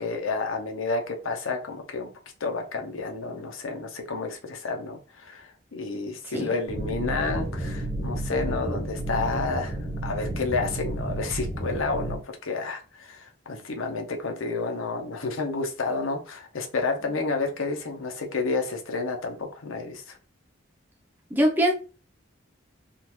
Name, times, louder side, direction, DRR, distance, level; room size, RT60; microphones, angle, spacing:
voice 1, 0.0-2.1 2.4-20.2, left 3 dB, 85° left, 0.8 m, -30 dB
sound 1, 6.7-12.2, right 1 dB, 25° right, 1.4 m, -31 dB
voice 2, 21.3-21.7, equal, 10° right, 0.7 m, -22 dB
3.6 x 2.5 x 3.0 m
head